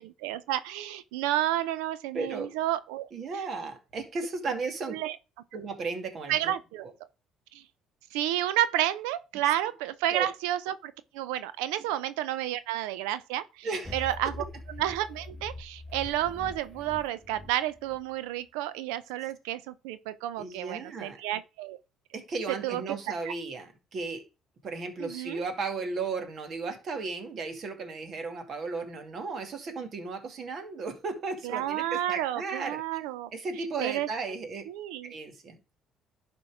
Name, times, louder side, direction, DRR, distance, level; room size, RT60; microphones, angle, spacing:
voice 1, 0.0-3.1 4.9-5.2 6.3-6.9 7.5-7.6 8.1-13.7 13.9-14.4 14.8-21.8 22.6-23.0 23.2-23.3 25.0-25.4 31.4-33.3 33.8-34.1 34.7-35.1, right 13 dB, 85° right, 0.5 m, -31 dB
voice 2, 2.1-2.5 3.1-5.0 5.5-6.5 10.1-10.3 13.6-14.1 20.4-21.2 22.1-24.2 24.6-32.8 33.3-34.7 35.0-35.7, right 4 dB, 55° right, 2.3 m, -35 dB
sound 1, 13.8-18.0, left 2 dB, 10° left, 2.5 m, -43 dB
11.5 x 4.5 x 4.9 m
supercardioid pair, 70°, 0 cm